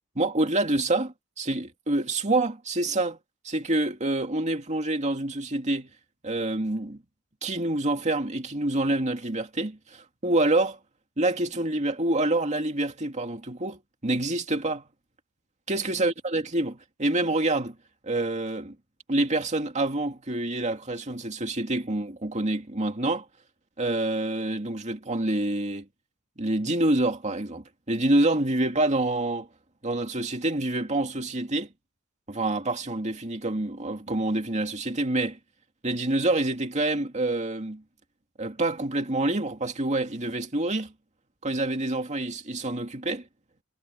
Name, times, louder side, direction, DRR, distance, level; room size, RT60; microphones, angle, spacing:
voice 1, 0.2-3.2 3.4-5.9 6.2-7.0 7.4-10.8 11.2-14.8 15.7-17.8 18.0-18.8 19.1-23.3 23.8-25.9 26.4-29.5 29.8-31.7 32.3-35.4 35.8-37.8 38.4-40.9 41.4-43.2, right 2 dB, 35° right, 2.4 m, -27 dB
head